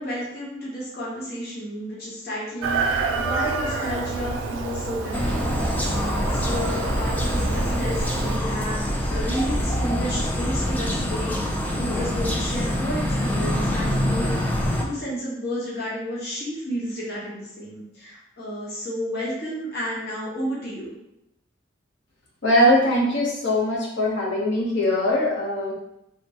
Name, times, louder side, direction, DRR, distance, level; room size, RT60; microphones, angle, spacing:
voice 1, 0.0-5.7 6.0-20.9, equal, 55° left, -6 dB, 1.0 m, -32 dB
Chicken rooster, 2.6-8.4, right 4 dB, 85° right, 0.4 m, -28 dB
sound 1, 5.1-14.8, equal, 10° left, 0.3 m, -25 dB
voice 2, 22.4-25.7, left 1 dB, 80° left, -4 dB, 0.9 m, -21 dB
3.5 x 2.2 x 2.8 m, 0.84 s
head